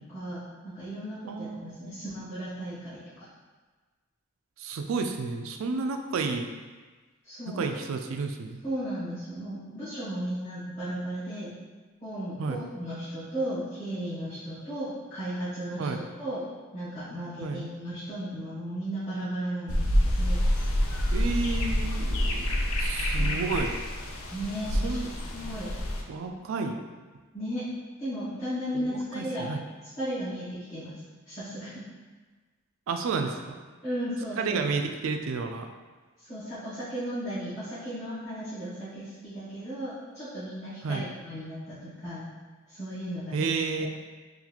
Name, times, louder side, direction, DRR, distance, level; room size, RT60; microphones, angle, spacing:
voice 1, 0.0-3.2 7.2-7.7 8.6-11.5 12.0-16.4 16.7-20.4 23.1-23.4 24.3-25.1 25.3-25.7 26.3-26.4 27.3-27.7 28.0-29.5 30.0-31.0 31.3-31.8 33.8-34.6 36.2-42.3 42.7-43.5 43.8-43.9, right 1 dB, 35° left, -17 dB, 1.3 m, -35 dB
voice 2, 1.3-2.0 4.6-6.5 7.6-8.6 12.4-12.6 15.8-16.0 17.4-17.6 21.1-23.7 24.8-25.1 26.1-26.8 28.7-29.6 32.9-33.6 34.4-35.7 40.8-41.1 43.3-43.9, right 4 dB, 75° right, 5 dB, 0.3 m, -31 dB
sound 1, 19.7-26.0, equal, 85° left, 0.5 m, -27 dB
3.9 x 2.5 x 2.9 m, 1.3 s
head